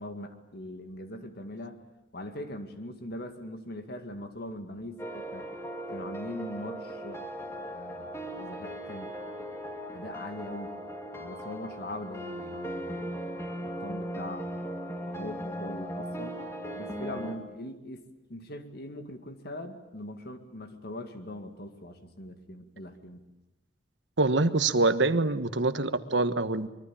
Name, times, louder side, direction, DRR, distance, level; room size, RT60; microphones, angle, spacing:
voice 1, 0.0-1.8 2.1-5.5 5.9-9.1 9.9-10.8 11.1-14.6 15.1-16.4 16.7-23.2, left 1 dB, 60° left, 7 dB, 2.1 m, -41 dB
sound 1, 5.0-17.4, equal, 15° left, 2.5 m, -38 dB
voice 2, 24.2-26.7, right 3 dB, 75° right, 11 dB, 1.4 m, -25 dB
24.5 x 23.0 x 8.8 m, 0.95 s
head